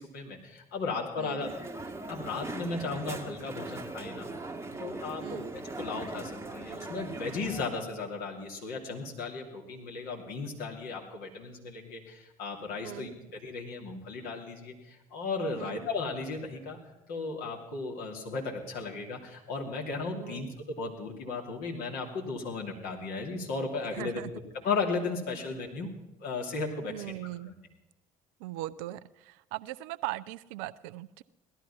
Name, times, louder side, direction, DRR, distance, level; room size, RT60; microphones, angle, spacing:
voice 1, 0.0-1.7 2.1-4.3 4.8-5.4 5.8-16.8 17.1-20.5 20.8-24.2 24.6-25.9 26.2-27.1 27.4-27.5, left 4 dB, 55° left, 0 dB, 2.7 m, -35 dB
voice 2, 1.2-1.5 5.2-5.5 12.8-13.1 15.6-15.9 20.1-20.5 23.9-24.3 26.9-27.6 28.4-31.2, right 16 dB, 60° right, 16 dB, 0.5 m, -39 dB
Crowd, 1.4-7.7, right 2 dB, 15° right, 1.3 m, -40 dB
17.5 x 12.5 x 5.7 m, 0.96 s
figure-of-eight pair, 55°, 18 cm